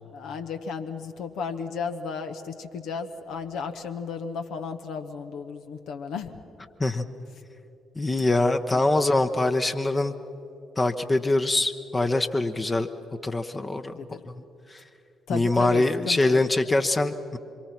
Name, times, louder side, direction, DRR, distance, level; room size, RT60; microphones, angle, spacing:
voice 1, 0.0-6.3 8.7-8.8 13.9-14.2 15.3-16.4, left 5 dB, 65° left, 6 dB, 1.1 m, -34 dB
voice 2, 8.0-10.1 10.8-12.9 13.2-13.9 15.3-17.4, left 2 dB, 25° left, 7 dB, 1.0 m, -23 dB
26.0 x 23.0 x 6.0 m, 2.8 s
figure-of-eight pair, 40°, 0 cm